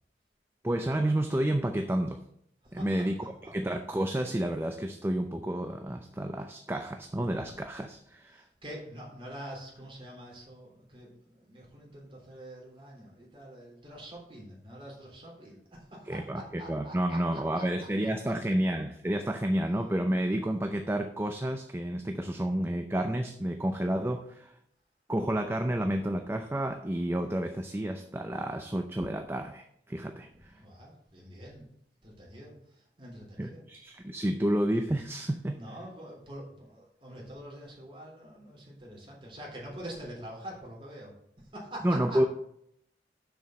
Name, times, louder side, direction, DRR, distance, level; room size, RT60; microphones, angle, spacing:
voice 1, 0.6-2.2 2.7-3.1 3.5-8.4 16.1-24.6 25.1-30.6 33.4-35.6 41.8-42.3, right 1 dB, 15° right, 5 dB, 0.5 m, -30 dB
voice 2, 8.3-18.1 30.5-31.7 32.0-33.6 35.5-42.3, right 1 dB, 30° right, -3 dB, 3.6 m, -45 dB
7.1 x 6.2 x 6.3 m, 0.72 s
head